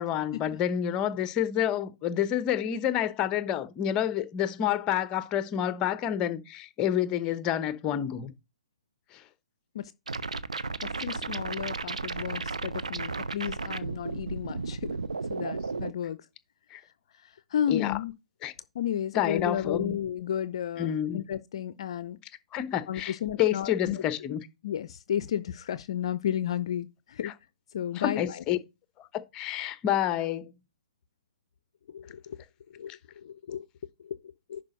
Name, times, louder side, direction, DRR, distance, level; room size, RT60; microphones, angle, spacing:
voice 1, 0.0-8.3 9.1-9.2 16.7-16.8 17.7-18.0 18.4-18.5 19.1-20.0 20.8-21.2 22.5-24.4 27.2-27.3 27.9-28.6 29.0-30.5, left 10 dB, 25° left, 1.0 m, -29 dB
sound 1, 10.1-15.9, right 4 dB, 80° right, 0.7 m, -34 dB
voice 2, 10.8-15.0 15.3-16.2 17.2-18.1 18.7-22.2 22.9-24.0 24.6-27.3 27.7-28.4 31.9-32.4 32.7-33.7 34.0-34.2 34.5-34.6, left 10 dB, 50° left, 0.6 m, -33 dB
10.5 x 4.9 x 4.0 m
figure-of-eight pair, 125°, 4 cm